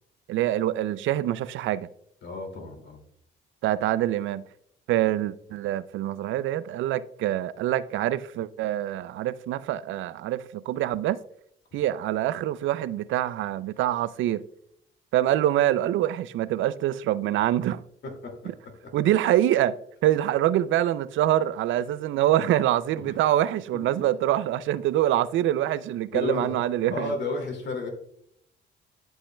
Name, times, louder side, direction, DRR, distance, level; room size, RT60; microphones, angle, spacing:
voice 1, 0.3-1.9 3.6-4.5 4.9-11.2 11.7-14.4 15.1-17.8 18.9-19.8 20.0-27.1, right 13 dB, 80° right, 0.4 m, -25 dB
voice 2, 2.2-3.0 18.2-18.3 23.0-23.1 23.9-24.0 26.1-26.5 26.9-27.9, left 3 dB, 60° left, 2.4 m, -32 dB
11.5 x 5.4 x 2.2 m
cardioid pair, 90°, 20 cm